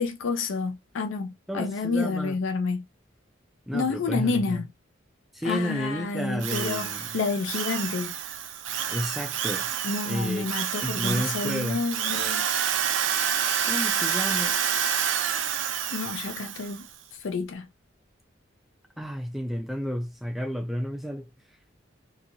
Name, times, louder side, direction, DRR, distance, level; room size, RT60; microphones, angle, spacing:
voice 1, 0.0-2.8 3.7-4.7 5.4-8.1 9.8-12.5 15.9-16.8 17.2-17.7, left 4 dB, 80° left, 0.5 m, -29 dB
voice 2, 1.5-2.4 3.7-4.6 5.3-7.0 8.9-9.7 10.1-10.5 10.8-11.8 13.6-14.6 19.0-21.3, equal, ahead, 0.4 m, -31 dB
Drill, 6.4-16.8, right 8 dB, 75° right, 0.5 m, -28 dB
2.7 x 2.7 x 2.6 m
head